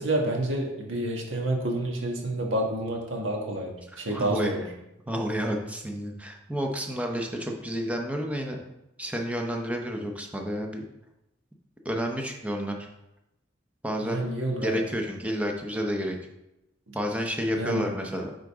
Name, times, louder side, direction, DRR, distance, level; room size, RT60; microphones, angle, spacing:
voice 1, 0.0-4.6 14.0-14.9 16.9-17.0 17.5-17.9, right 1 dB, 90° right, 0 dB, 1.4 m, -29 dB
voice 2, 4.1-4.5 5.1-8.6 9.0-10.8 11.8-12.8 13.8-14.2 14.6-16.2 16.9-18.3, equal, 5° right, 2 dB, 0.7 m, -30 dB
9.7 x 3.9 x 3.5 m, 0.91 s
head